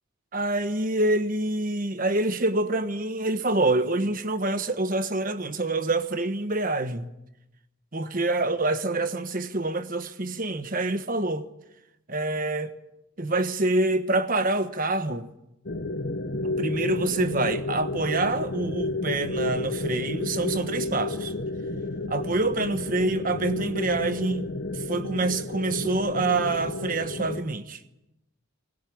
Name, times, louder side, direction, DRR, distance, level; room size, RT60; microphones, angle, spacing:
voice 1, 0.3-7.1 7.9-11.4 12.1-12.7 13.2-15.3 16.4-21.3 22.1-27.8, right 2 dB, 40° right, 1.3 m, -26 dB
sound 1, 15.6-27.4, left 2 dB, 50° left, 1.2 m, -31 dB
20.5 x 19.5 x 8.7 m
head